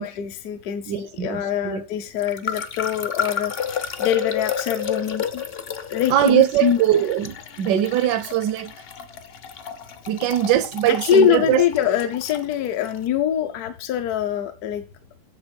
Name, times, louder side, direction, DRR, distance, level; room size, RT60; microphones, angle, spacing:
voice 1, 0.0-5.4 5.9-6.8 10.9-14.8, left 9 dB, 70° left, 1.1 m, -24 dB
voice 2, 0.9-1.9 6.1-8.7 10.1-11.6, right 12 dB, 85° right, 1.2 m, -21 dB
sound 1, 2.2-13.0, left 7 dB, 50° left, 0.7 m, -31 dB
8.0 x 6.7 x 5.2 m
omnidirectional pair, 1.8 m